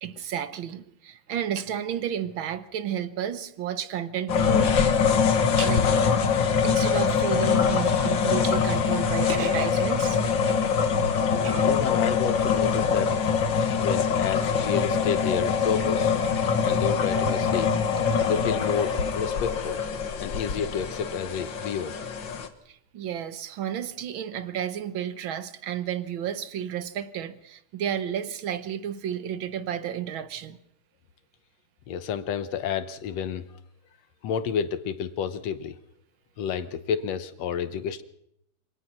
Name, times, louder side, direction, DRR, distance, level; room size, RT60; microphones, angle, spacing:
voice 1, 0.0-4.8 5.6-6.0 6.6-10.6 11.4-11.7 22.7-30.6, right 9 dB, 65° right, 1.3 m, -32 dB
sound 1, 4.3-22.5, left 6 dB, 45° left, 1.8 m, -24 dB
voice 2, 11.3-13.2 13.8-16.1 16.6-17.7 18.3-19.8 20.2-22.0 31.9-33.4 34.2-35.8 36.4-38.0, left 7 dB, 65° left, 2.1 m, -30 dB
26.5 x 17.5 x 6.1 m
omnidirectional pair, 3.4 m